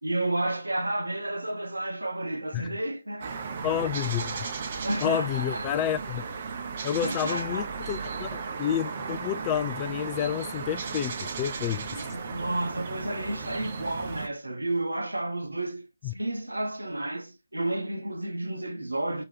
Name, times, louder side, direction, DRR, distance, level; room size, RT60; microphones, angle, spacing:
voice 1, 0.0-3.5 4.8-5.8 7.0-7.7 11.9-19.2, right 1 dB, 85° right, 0.9 m, -31 dB
sound 1, 3.2-14.3, right 5 dB, 40° right, 0.8 m, -35 dB
voice 2, 3.6-4.4 5.0-6.3 6.8-12.0 16.0-16.1, left 10 dB, 25° left, 0.3 m, -30 dB
4.9 x 2.9 x 3.3 m
figure-of-eight pair, 145°, 0 cm